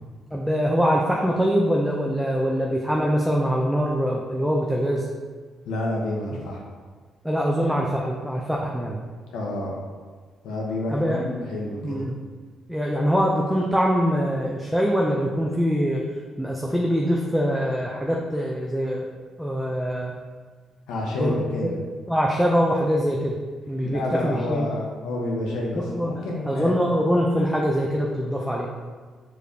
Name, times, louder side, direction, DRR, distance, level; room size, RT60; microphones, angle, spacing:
voice 1, 0.3-5.1 7.2-9.0 10.9-11.2 11.8-12.2 12.7-16.0 16.4-19.1 19.4-20.1 21.2-21.7 22.1-23.4 23.7-24.7 25.9-26.1 26.5-28.7, equal, ahead, -2 dB, 0.4 m, -23 dB
voice 2, 5.7-6.6 9.3-9.8 10.4-12.1 20.9-21.7 23.9-26.8, left 1 dB, 90° left, -2 dB, 0.8 m, -29 dB
4.8 x 3.2 x 2.7 m, 1.5 s
cardioid pair, 90°, 0 cm